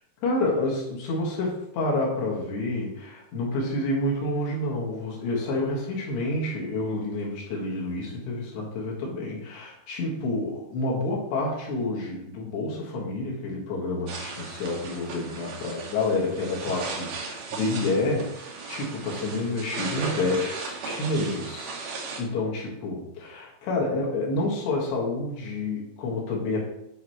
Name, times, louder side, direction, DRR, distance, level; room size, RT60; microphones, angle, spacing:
voice 1, 0.2-21.7 22.2-26.6, left 2 dB, 70° left, -3 dB, 3.4 m, -29 dB
sound 1, 14.1-22.2, right 4 dB, 80° right, 1.9 m, -36 dB
9.5 x 4.8 x 3.0 m, 0.82 s
omnidirectional pair, 5.2 m